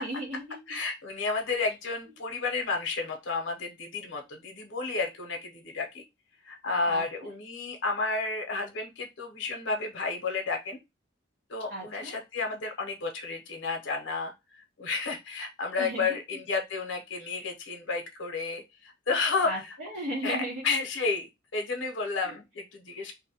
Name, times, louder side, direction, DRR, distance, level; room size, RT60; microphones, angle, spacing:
voice 1, 0.0-0.6 6.9-7.1 11.7-12.2 15.8-16.2 17.2-17.3 19.4-20.7 22.3-22.4, right 1 dB, 80° right, -3 dB, 0.7 m, -35 dB
voice 2, 0.7-6.0 6.5-10.8 11.5-14.3 14.8-19.6 20.2-20.4 20.6-23.1, left 4 dB, 70° left, 3 dB, 0.6 m, -31 dB
2.5 x 2.1 x 2.7 m, 0.22 s
head